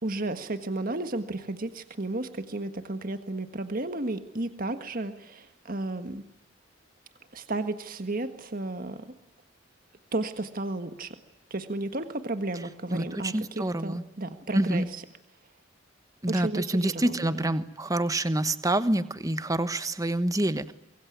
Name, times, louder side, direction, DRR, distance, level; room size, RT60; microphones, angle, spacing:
voice 1, 0.0-6.2 7.3-9.1 10.1-11.1 11.5-15.0 16.3-17.5, right 2 dB, 45° right, 9 dB, 1.6 m, -33 dB
voice 2, 12.9-14.0 14.5-14.9 16.2-20.7, right 1 dB, 20° right, 12 dB, 1.1 m, -27 dB
25.0 x 23.0 x 9.4 m, 0.84 s
head